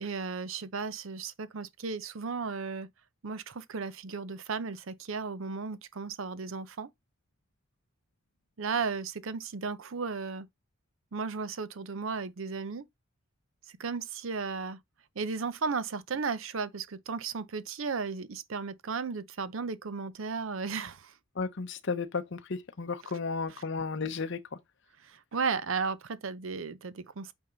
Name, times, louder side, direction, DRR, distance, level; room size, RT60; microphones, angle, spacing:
voice 1, 0.0-2.9 3.2-6.9 8.6-10.5 11.1-12.9 13.8-14.8 15.2-21.1 25.0-27.3, right 5 dB, 70° right, 0.6 m, -35 dB
voice 2, 21.4-24.6, left 4 dB, 60° left, 0.7 m, -34 dB
8.6 x 3.5 x 3.9 m
head